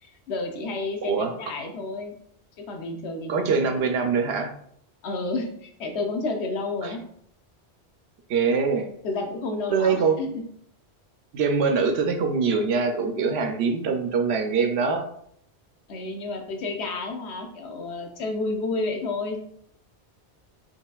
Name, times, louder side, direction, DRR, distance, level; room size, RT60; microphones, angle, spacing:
voice 1, 0.0-2.1 2.6-3.7 5.0-7.0 9.0-10.4 15.9-19.4, left 3 dB, 80° left, 3 dB, 1.0 m, -31 dB
voice 2, 1.0-1.3 3.3-4.5 6.8-6.9 8.3-8.9 9.7-10.2 11.3-15.1, right 5 dB, 75° right, 5 dB, 0.8 m, -23 dB
4.8 x 2.9 x 2.3 m, 0.68 s
omnidirectional pair, 1.1 m